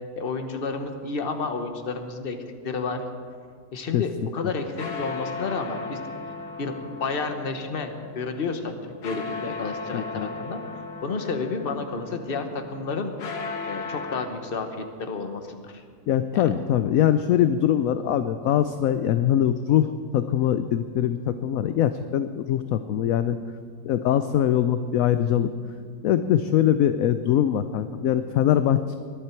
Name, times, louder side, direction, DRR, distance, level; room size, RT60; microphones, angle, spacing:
voice 1, 0.1-2.4 2.6-3.0 3.7-6.0 6.6-6.7 7.0-10.6 11.0-13.1 13.6-15.8 16.3-16.5, left 4 dB, 40° left, 6 dB, 1.2 m, -31 dB
sound 1, 4.5-14.3, left 4 dB, 90° left, 1.9 m, -37 dB
voice 2, 9.9-10.3 16.1-23.4 23.8-25.5 26.0-29.0, left 10 dB, 70° left, 11 dB, 0.9 m, -22 dB
20.5 x 11.5 x 4.5 m, 2.1 s
omnidirectional pair, 1.7 m